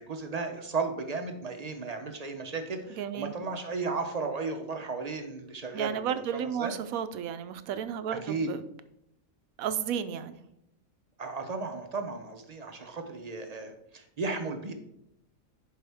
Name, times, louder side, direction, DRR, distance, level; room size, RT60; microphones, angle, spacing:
voice 1, 0.0-6.7 8.1-8.5 11.2-14.7, right 4 dB, 40° right, 6 dB, 0.6 m, -35 dB
voice 2, 3.0-3.3 5.7-8.6 9.6-10.4, right 8 dB, 80° right, 12 dB, 1.0 m, -33 dB
11.0 x 4.6 x 3.5 m, 0.80 s
omnidirectional pair, 1.4 m